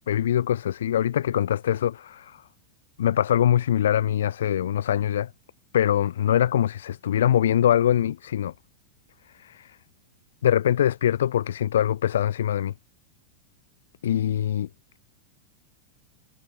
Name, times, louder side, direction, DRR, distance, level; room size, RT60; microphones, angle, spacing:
voice 1, 0.1-2.4 3.0-5.3 5.7-8.5 9.4-9.8 10.4-12.7 14.0-14.7, left 10 dB, 60° left, 0.3 m, -23 dB
figure-of-eight pair, 90°, 0 cm